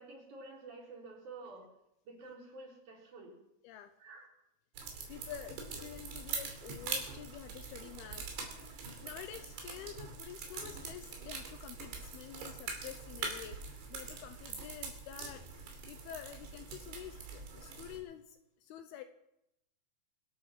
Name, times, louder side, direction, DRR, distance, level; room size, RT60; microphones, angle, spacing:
voice 1, 0.0-1.6 2.0-3.3 4.0-4.3, right 3 dB, 45° right, -2 dB, 5.0 m, -50 dB
sound 1, 4.7-18.0, right 5 dB, 85° right, 4.9 m, -43 dB
voice 2, 4.8-19.0, left 11 dB, 80° left, 9 dB, 2.5 m, -49 dB
25.5 x 8.6 x 6.0 m, 0.84 s
omnidirectional pair, 4.9 m